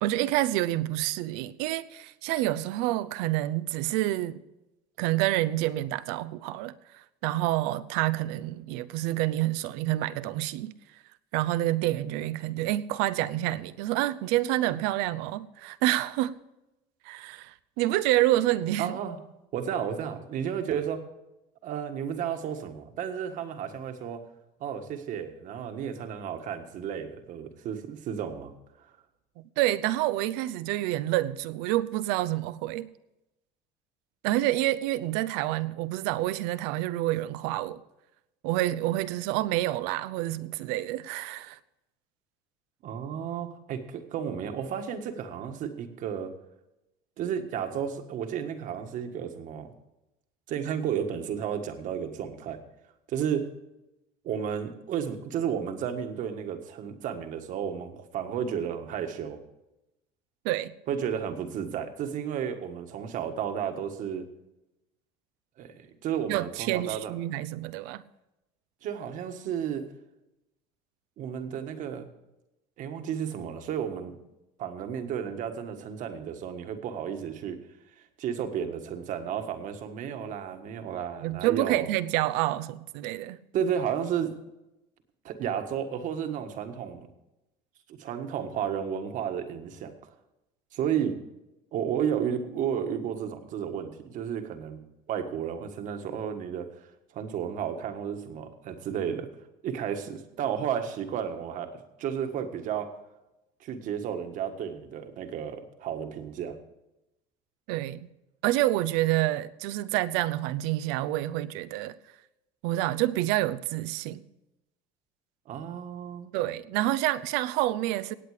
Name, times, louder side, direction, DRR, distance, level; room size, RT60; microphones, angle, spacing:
voice 1, 0.0-4.4 5.0-10.7 11.3-16.3 17.0-18.9 29.4-32.9 34.2-37.8 38.4-41.6 60.4-60.7 66.3-68.0 81.2-83.4 107.7-108.1 108.4-112.0 112.6-114.2 116.3-118.1, right 15 dB, 80° right, 0.7 m, -28 dB
voice 2, 18.8-19.2 19.5-21.0 21.6-24.2 24.6-28.5 42.8-46.3 47.2-49.7 50.5-52.6 53.1-53.5 54.2-59.4 60.9-64.3 65.6-67.1 68.8-69.8 71.2-72.1 72.8-74.2 74.6-77.6 78.2-81.9 83.5-84.3 85.2-87.1 87.9-90.1 90.7-91.2 91.7-94.8 95.1-99.3 99.6-101.7 102.0-102.9 103.6-106.5 115.5-116.3, right 8 dB, 55° right, 1.6 m, -32 dB
17.0 x 8.7 x 4.9 m
cardioid pair, 130°, 16 cm